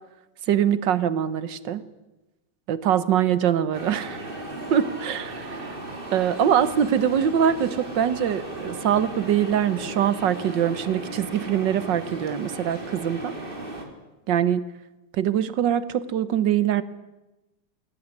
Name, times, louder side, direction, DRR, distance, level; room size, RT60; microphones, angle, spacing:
voice 1, 0.5-1.8 2.7-4.3 4.7-5.7 6.1-13.3 14.3-14.6 15.1-16.8, right 9 dB, 85° right, 15 dB, 1.8 m, -23 dB
sound 1, 3.7-13.9, right 1 dB, 30° right, 3.4 m, -36 dB
22.0 x 17.5 x 9.8 m, 1.0 s
omnidirectional pair, 1.9 m